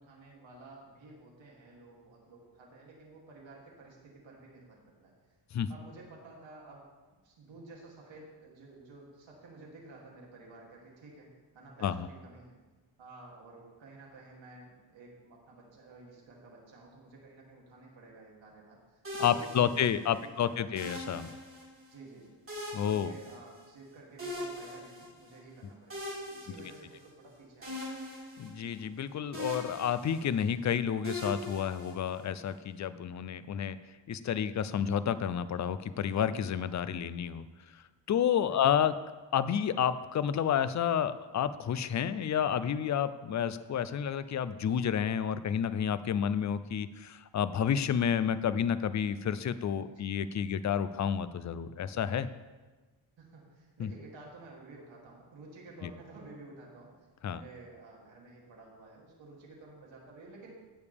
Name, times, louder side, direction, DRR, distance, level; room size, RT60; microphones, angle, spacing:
voice 1, 0.0-5.1 5.7-6.9 7.2-11.3 11.5-12.6 13.0-20.9 21.9-22.3 22.9-27.8 28.5-28.6 38.4-38.9 49.9-50.1 53.2-56.9 57.3-60.5, right 3 dB, 70° right, -3 dB, 2.9 m, -52 dB
sound 1, 19.0-20.2 20.8-21.9 22.5-23.8 24.2-25.4 25.9-27.3 27.6-29.0 29.3-30.5 31.0-32.4, left 1 dB, 25° right, 3.9 m, -41 dB
voice 2, 19.2-21.3 22.7-23.1 26.5-26.7 28.4-33.8 34.1-37.4 38.1-38.9 39.3-52.3 53.8-53.9 55.8-55.9 57.2-57.4, left 8 dB, 40° left, 14 dB, 0.4 m, -30 dB
17.0 x 6.9 x 3.5 m, 1.3 s
wide cardioid pair, 150°, 47 cm